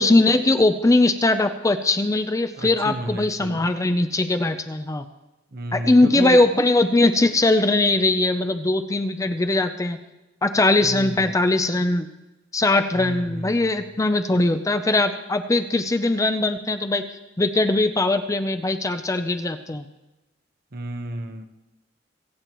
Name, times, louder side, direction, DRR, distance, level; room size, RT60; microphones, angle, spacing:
voice 1, 0.0-5.0 5.7-10.0 10.4-12.1 12.5-17.0 17.4-19.8, left 2 dB, 15° left, 9 dB, 0.5 m, -20 dB
voice 2, 2.6-3.7 5.5-6.4 10.8-11.3 12.9-13.8 20.7-21.4, right 1 dB, 55° right, 5 dB, 1.0 m, -32 dB
24.5 x 8.5 x 3.1 m, 1.0 s
head